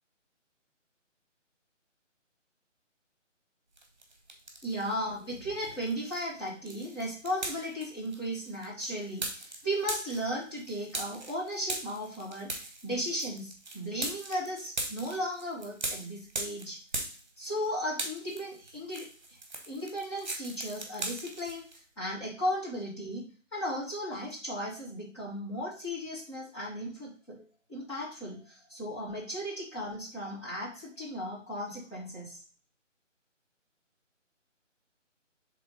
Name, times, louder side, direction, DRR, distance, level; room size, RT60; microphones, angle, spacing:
sound 1, 3.8-4.9 5.3-17.7 17.9-21.8, right 2 dB, 35° right, 1.4 m, -40 dB
voice 1, 4.6-16.8 17.4-19.1 19.7-21.6 22.0-23.2 23.5-27.4 27.7-32.4, equal, 20° left, -7 dB, 2.2 m, -36 dB
5.9 x 3.6 x 5.0 m, 0.41 s
figure-of-eight pair, 170°, 38 cm